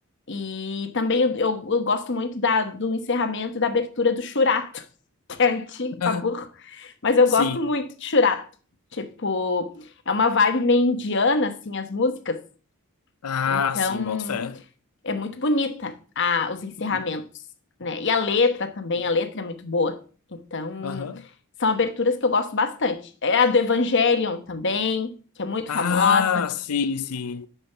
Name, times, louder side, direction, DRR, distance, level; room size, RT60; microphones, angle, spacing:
voice 1, 0.3-4.8 5.3-8.5 8.9-12.4 13.5-14.4 15.0-17.3 17.8-20.0 20.3-21.1 21.6-25.1 25.4-26.3, left 4 dB, 55° left, 1.0 m, -24 dB
voice 2, 13.2-14.6 16.9-17.1 17.8-17.9 20.8-21.2 25.7-27.5, left 6 dB, 90° left, 0.6 m, -26 dB
6.6 x 6.1 x 7.1 m
head